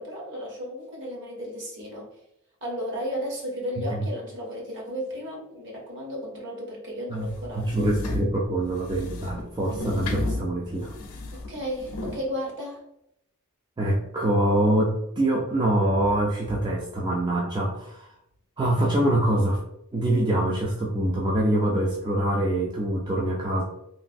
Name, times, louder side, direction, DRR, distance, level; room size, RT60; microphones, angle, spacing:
voice 1, 0.0-2.1 2.6-7.9 11.3-12.8, equal, 55° right, -2 dB, 1.0 m, -34 dB
sound 1, 7.2-12.2, left 2 dB, 85° left, 0.5 m, -33 dB
voice 2, 7.5-10.9 13.8-18.1 18.6-19.6 19.9-23.6, right 1 dB, 20° right, -3 dB, 0.3 m, -24 dB
3.0 x 2.5 x 2.5 m, 0.80 s
head